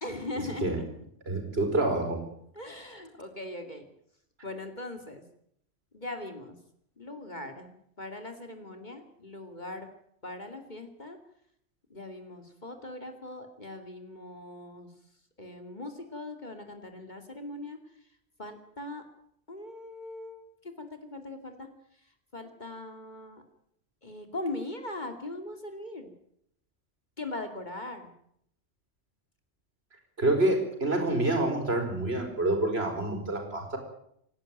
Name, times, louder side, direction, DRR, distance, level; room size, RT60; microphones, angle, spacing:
voice 1, 0.0-1.1 2.5-3.8 4.4-5.2 5.9-6.6 7.0-9.9 10.2-11.2 11.9-14.9 15.4-17.8 18.4-19.1 19.5-21.7 22.3-23.4 24.0-26.1 27.2-28.1, left 2 dB, 40° left, 6 dB, 2.7 m, -40 dB
voice 2, 1.3-2.2 30.2-33.8, right 2 dB, 60° right, 5 dB, 5.5 m, -27 dB
27.0 x 11.5 x 9.2 m, 0.71 s
omnidirectional pair, 1.2 m